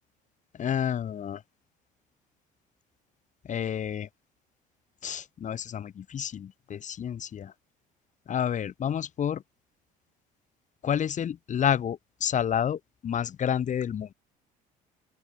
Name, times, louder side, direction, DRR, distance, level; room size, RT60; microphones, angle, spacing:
voice 1, 0.6-1.4 3.5-4.1 5.0-7.5 8.3-9.4 10.8-14.1, left 9 dB, 40° left, 0.9 m, -29 dB
open air
supercardioid pair, 75°, 19 cm